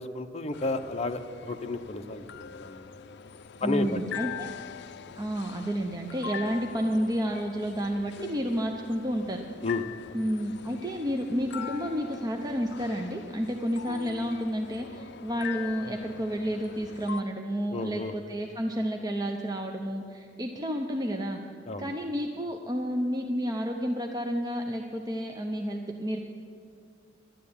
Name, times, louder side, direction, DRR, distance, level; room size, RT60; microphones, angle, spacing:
voice 1, 0.0-2.8 3.6-4.0 9.6-10.2 17.7-18.1 21.7-21.9, left 3 dB, 35° left, 5 dB, 0.8 m, -32 dB
sound 1, 0.5-17.2, left 7 dB, 60° left, 0.5 m, -43 dB
voice 2, 3.6-4.5 5.2-9.4 10.1-21.4 21.8-26.2, equal, 20° right, 2 dB, 0.7 m, -30 dB
11.5 x 11.0 x 8.6 m, 2.3 s
head